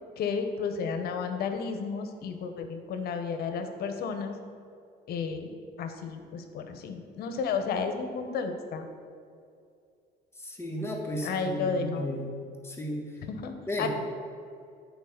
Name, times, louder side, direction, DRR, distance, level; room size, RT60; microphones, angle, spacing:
voice 1, 0.2-4.4 5.1-5.5 5.8-8.9 11.2-12.1 13.3-13.9, left 5 dB, 65° left, 6 dB, 1.0 m, -32 dB
voice 2, 10.4-12.3 12.6-13.1 13.7-13.9, equal, 15° left, 0 dB, 1.4 m, -34 dB
9.3 x 4.7 x 6.6 m, 2.4 s
cardioid pair, 110°, 17 cm